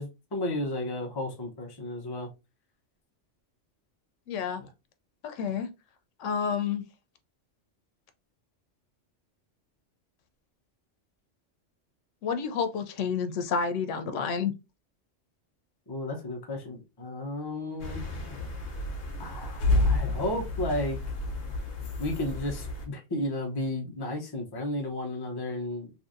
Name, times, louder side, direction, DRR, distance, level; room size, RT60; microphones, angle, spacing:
voice 1, 0.0-2.3 15.9-18.0 19.2-21.0 22.0-25.9, left 1 dB, 25° left, 0.6 m, -33 dB
voice 2, 4.3-4.6 5.2-5.7 6.2-6.8 12.2-14.5, left 6 dB, 85° left, 0.9 m, -29 dB
sound 1, 17.8-22.9, left 2 dB, 55° left, 0.9 m, -30 dB
3.1 x 2.7 x 2.5 m
omnidirectional pair, 1.2 m